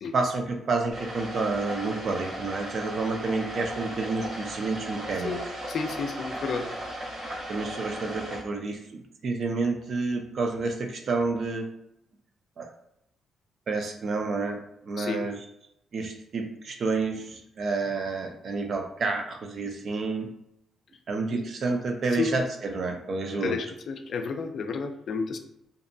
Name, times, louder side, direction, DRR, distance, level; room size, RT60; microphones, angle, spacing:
voice 1, 0.1-5.3 7.5-11.7 12.6-12.7 13.7-14.6 14.8-15.4 15.9-20.3 21.1-23.6, right 3 dB, 55° right, 4 dB, 0.5 m, -29 dB
sound 1, 0.9-8.4, right 1 dB, 80° right, 1.0 m, -36 dB
voice 2, 5.2-6.7 15.0-15.3 21.3-21.4 22.1-22.3 23.3-25.4, left 4 dB, 60° left, 7 dB, 0.3 m, -31 dB
2.6 x 2.1 x 2.6 m, 0.79 s
cardioid pair, 95°, 0 cm